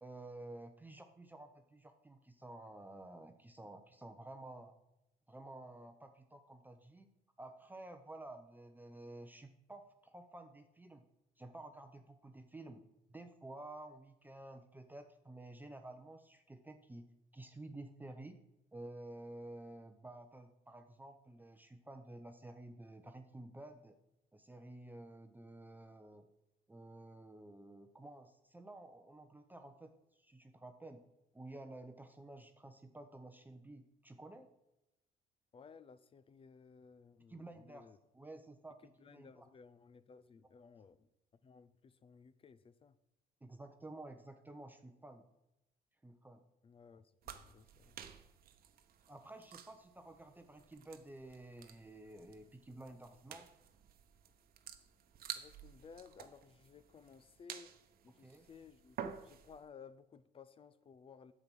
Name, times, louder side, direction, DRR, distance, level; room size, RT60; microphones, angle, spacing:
voice 1, 0.0-4.7 5.3-7.1 7.4-11.0 11.4-12.8 13.1-17.1 17.3-18.4 18.7-24.0 24.3-26.3 26.7-31.0 31.3-34.5 37.3-37.9 38.1-38.8 39.1-39.5 43.4-45.3 46.0-46.4 49.1-53.5 58.2-58.5, right 2 dB, 10° right, 7 dB, 0.7 m, -52 dB
voice 2, 35.5-38.0 38.8-41.1 41.4-43.0 46.6-48.0 55.4-57.7 58.0-61.3, left 6 dB, 35° left, 15 dB, 0.6 m, -58 dB
sound 1, 47.2-59.6, right 9 dB, 60° right, 1.0 m, -52 dB
8.6 x 7.5 x 6.1 m, 0.87 s
cardioid pair, 110°, 17 cm